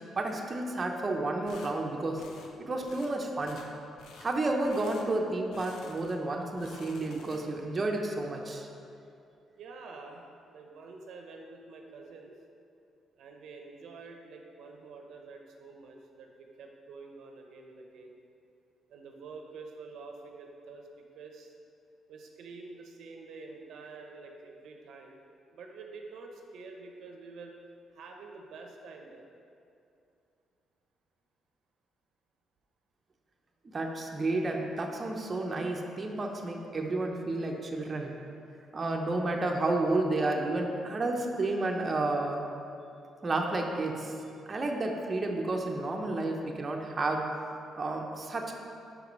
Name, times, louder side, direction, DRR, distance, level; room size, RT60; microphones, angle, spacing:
voice 1, 0.1-2.2 2.6-3.6 4.2-8.7 33.6-38.1 38.7-42.4 43.2-44.2 44.5-47.2 47.8-48.5, right 2 dB, 30° right, 1 dB, 0.7 m, -31 dB
sound 1, 1.5-1.7 2.2-2.5 2.8-3.1 3.4-3.7 4.0-4.3 4.6-5.1 5.5-6.2 6.5-7.6, left 4 dB, 75° left, 0.6 m, -51 dB
voice 2, 9.6-10.2 10.5-12.3 13.2-18.2 18.9-20.9 21.1-21.5 22.1-25.2 25.5-27.5 27.9-29.2, right 4 dB, 75° right, 2 dB, 0.7 m, -47 dB
5.2 x 4.7 x 5.2 m, 2.6 s
cardioid pair, 90°, 0 cm